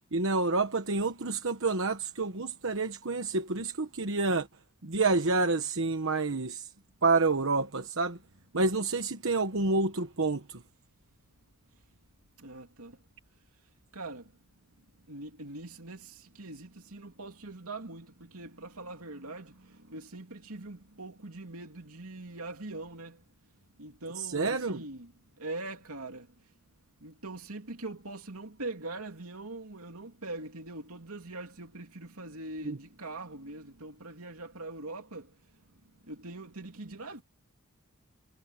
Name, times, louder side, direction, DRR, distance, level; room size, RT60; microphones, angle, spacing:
voice 1, 0.1-4.5 4.8-6.7 7.0-8.2 8.5-10.6 24.2-24.8 32.6-32.8, right 3 dB, 60° right, 1.2 m, -28 dB
voice 2, 12.4-13.0 13.9-14.3 15.1-23.2 23.8-25.1 25.4-26.3 27.0-35.3 36.1-37.2, right 2 dB, 80° right, 2.9 m, -42 dB
head